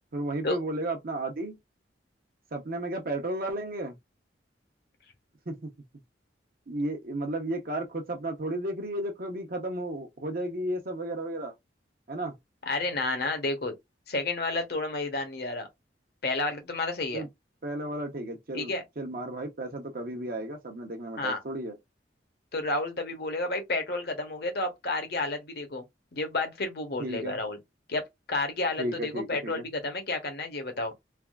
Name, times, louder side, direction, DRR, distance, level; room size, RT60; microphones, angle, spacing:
voice 1, 0.1-1.6 2.5-4.0 5.5-5.7 6.7-11.5 12.1-12.4 17.1-17.3 17.6-21.8 27.0-27.4 28.8-29.6, right 1 dB, 50° right, 0.8 m, -33 dB
voice 2, 12.7-13.7 14.1-15.7 16.2-17.3 18.5-18.8 21.2-21.4 22.5-25.8 26.1-27.6 27.9-28.0 28.3-30.9, left 2 dB, 60° left, 0.9 m, -31 dB
3.4 x 2.4 x 2.3 m
head